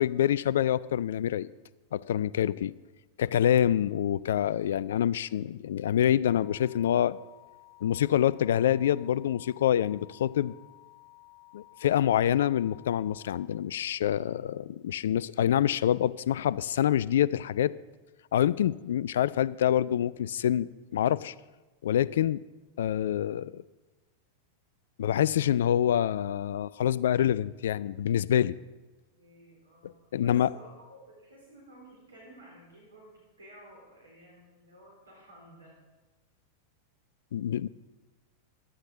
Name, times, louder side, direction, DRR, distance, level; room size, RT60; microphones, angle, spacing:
voice 1, 0.0-1.5 1.9-2.7 3.2-7.2 7.8-10.5 11.5-17.7 18.3-21.3 21.8-22.4 22.8-23.6 25.0-28.5 29.8-30.5 37.3-37.7, left 10 dB, 60° left, 20 dB, 0.3 m, -26 dB
sound 1, 6.2-13.5, left 23 dB, 30° left, 2.1 m, -55 dB
voice 2, 29.2-35.8, right 1 dB, 75° right, -3 dB, 3.6 m, -54 dB
15.5 x 11.0 x 3.8 m, 1.2 s
figure-of-eight pair, 90°, 0 cm